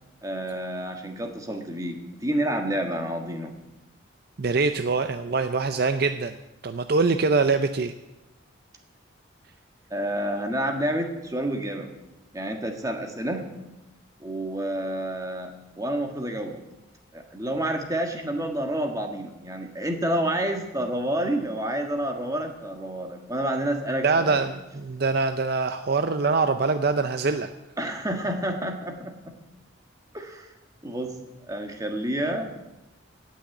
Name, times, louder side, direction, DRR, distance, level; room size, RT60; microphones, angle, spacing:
voice 1, 0.2-3.5 9.9-11.9 12.3-13.5 14.2-16.6 17.1-24.4 27.8-29.4 30.1-30.5 30.8-31.1 31.5-32.7, right 1 dB, 15° right, 3 dB, 1.5 m, -29 dB
voice 2, 4.4-6.3 6.6-7.9 24.0-27.5, right 4 dB, 50° right, 9 dB, 0.5 m, -24 dB
17.0 x 6.4 x 8.4 m, 0.99 s
head